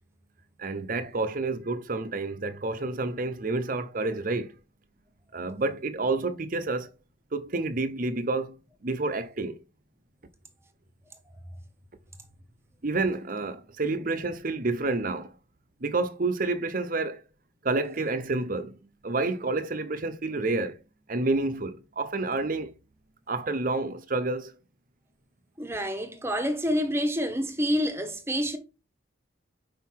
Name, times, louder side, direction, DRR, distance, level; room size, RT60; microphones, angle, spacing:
voice 1, 0.6-4.6 5.3-6.9 7.3-8.6 8.8-9.6 12.8-15.3 15.8-17.2 17.6-18.8 19.0-20.8 21.1-22.7 23.3-24.5, right 3 dB, 45° right, 0.8 m, -29 dB
voice 2, 25.6-28.6, equal, 15° right, 1.1 m, -28 dB
5.7 x 5.1 x 4.6 m
head